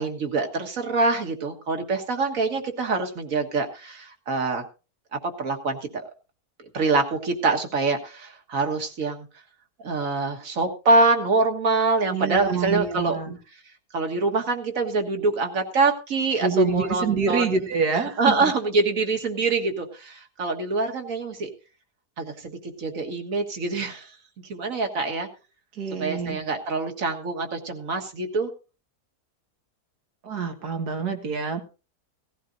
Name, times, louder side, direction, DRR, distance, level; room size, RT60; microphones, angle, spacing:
voice 1, 0.0-4.6 5.2-6.0 6.7-9.3 9.8-13.2 13.9-17.7 18.2-21.5 22.2-25.3 26.0-28.5, right 3 dB, 60° right, 5 dB, 2.0 m, -25 dB
voice 2, 12.1-13.4 16.4-18.5 25.7-26.4 30.2-31.6, right 5 dB, 80° right, 5 dB, 2.2 m, -26 dB
17.5 x 14.5 x 2.6 m, 0.32 s
omnidirectional pair, 1.6 m